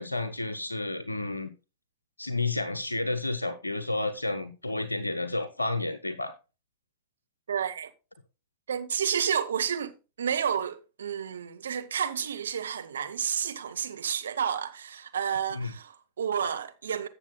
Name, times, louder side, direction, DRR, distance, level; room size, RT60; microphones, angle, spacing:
voice 1, 0.0-1.5 2.2-6.3 15.5-15.7, left 2 dB, 85° left, 0.7 m, -31 dB
voice 2, 7.5-7.9 8.7-9.9 10.2-17.1, right 8 dB, 65° right, 0.9 m, -30 dB
17.0 x 6.8 x 2.2 m
figure-of-eight pair, 90°, 0 cm